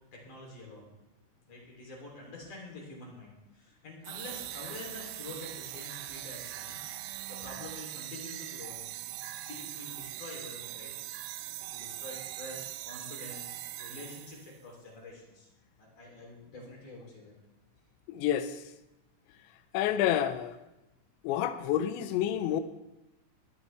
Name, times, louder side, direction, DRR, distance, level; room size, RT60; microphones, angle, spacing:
voice 1, 0.1-0.9 1.5-10.9 11.7-15.5 15.8-17.3, left 2 dB, 45° left, -1 dB, 4.7 m, -47 dB
sound 1, 4.0-14.6, right 14 dB, 80° right, 2.4 m, -41 dB
voice 2, 18.1-18.6 19.7-20.6 21.2-22.6, left 11 dB, 80° left, 11 dB, 3.0 m, -29 dB
19.5 x 12.5 x 3.5 m, 0.97 s
omnidirectional pair, 5.5 m